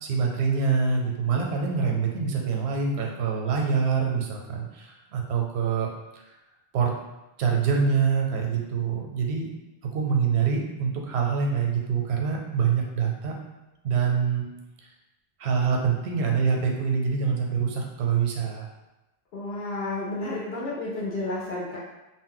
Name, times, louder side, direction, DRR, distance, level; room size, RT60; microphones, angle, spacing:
voice 1, 0.0-6.2 6.7-6.9 7.4-9.5 9.9-13.4 13.8-14.5 15.4-18.7, right 6 dB, 85° right, 0 dB, 0.8 m, -25 dB
voice 2, 19.3-21.8, left 2 dB, 75° left, -5 dB, 0.8 m, -31 dB
2.1 x 2.0 x 3.7 m, 1.0 s
omnidirectional pair, 1.0 m